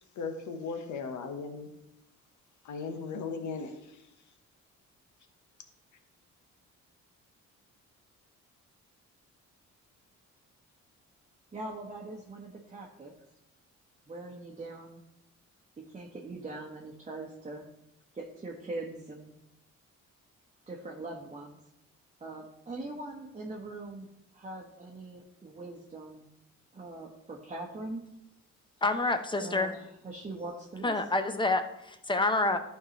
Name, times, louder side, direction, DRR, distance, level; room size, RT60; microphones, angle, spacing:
voice 1, 0.2-1.7 2.6-3.7, left 4 dB, 70° left, 6 dB, 1.1 m, -37 dB
voice 2, 11.5-13.1 14.1-15.0 15.9-17.7 18.1-19.3 20.7-21.6 22.2-26.3 26.7-28.1 29.4-30.9, right 2 dB, 20° right, -1 dB, 1.0 m, -42 dB
voice 3, 28.8-29.7 30.8-32.6, left 2 dB, 15° left, 8 dB, 0.7 m, -28 dB
11.5 x 4.7 x 3.0 m, 0.84 s
cardioid pair, 90°, 30 cm